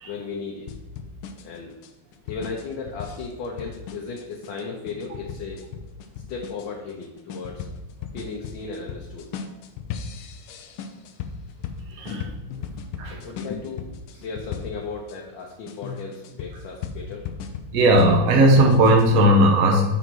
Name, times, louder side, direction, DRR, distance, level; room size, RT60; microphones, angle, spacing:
voice 1, 0.0-0.7 1.4-1.7 2.2-5.7 6.3-7.7 8.1-9.3 12.1-12.2 12.6-12.7 13.1-13.8 14.1-17.3, left 4 dB, 70° left, -1 dB, 1.5 m, -35 dB
sound 1, 0.7-15.2 15.7-19.1, left 6 dB, 90° left, 1.5 m, -37 dB
voice 2, 17.7-20.0, right 1 dB, 50° right, 1 dB, 1.2 m, -17 dB
6.2 x 4.0 x 6.0 m, 1.0 s
omnidirectional pair, 2.3 m